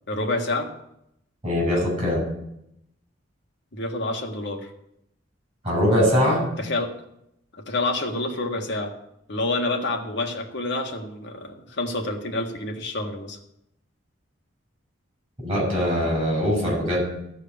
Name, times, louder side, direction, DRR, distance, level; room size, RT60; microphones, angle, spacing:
voice 1, 0.1-0.7 3.7-4.7 6.6-6.9 7.5-8.9 9.3-13.4, left 2 dB, 60° left, 3 dB, 1.7 m, -28 dB
voice 2, 1.4-2.2 5.6-6.4 15.4-17.0, equal, 25° right, -1 dB, 6.3 m, -22 dB
14.5 x 4.9 x 8.7 m, 0.79 s
head